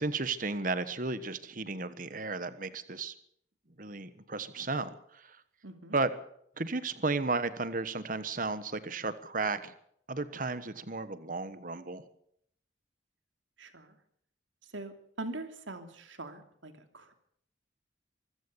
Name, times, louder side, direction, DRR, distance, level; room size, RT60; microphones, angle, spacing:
voice 1, 0.0-3.1 3.8-5.4 5.9-6.1 6.6-9.7 10.1-12.0, right 3 dB, 45° right, 13 dB, 1.3 m, -34 dB
voice 2, 5.6-6.0 13.6-14.0 14.7-17.1, right 2 dB, 90° right, 7 dB, 2.9 m, -43 dB
24.5 x 15.0 x 7.0 m, 0.68 s
head